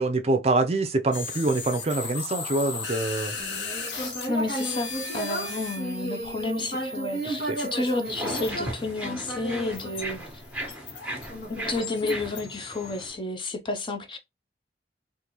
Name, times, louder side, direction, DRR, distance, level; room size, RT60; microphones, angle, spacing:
voice 1, 0.0-3.4 7.5-7.6, right 2 dB, 35° right, 0.5 m, -25 dB
sound 1, 1.1-9.1 9.7-13.1, left 4 dB, 90° left, 0.9 m, -37 dB
Human voice, 3.3-10.7 11.3-12.7, right 1 dB, 60° left, 1.3 m, -34 dB
voice 2, 4.0-10.2 11.5-14.2, left 2 dB, 30° left, 0.6 m, -31 dB
sound 2, 8.0-13.2, right 1 dB, 10° right, 1.2 m, -37 dB
3.6 x 2.6 x 3.0 m
head